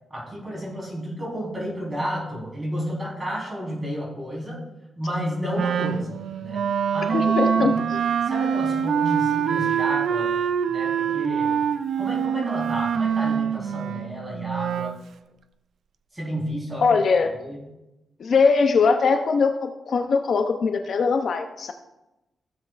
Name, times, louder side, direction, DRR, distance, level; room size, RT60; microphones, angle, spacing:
voice 1, 0.1-4.6 5.0-7.8 8.2-10.3 10.7-11.6 12.0-14.9 16.1-17.0 17.4-17.6, equal, 10° right, -4 dB, 3.9 m, -31 dB
Wind instrument woodwind instrument, 5.5-15.0, right 7 dB, 70° right, 0.4 m, -24 dB
voice 2, 7.1-7.7 16.8-17.3 18.2-21.7, left 5 dB, 55° left, 6 dB, 0.6 m, -21 dB
16.0 x 7.7 x 2.5 m, 0.96 s
wide cardioid pair, 150°, 0 cm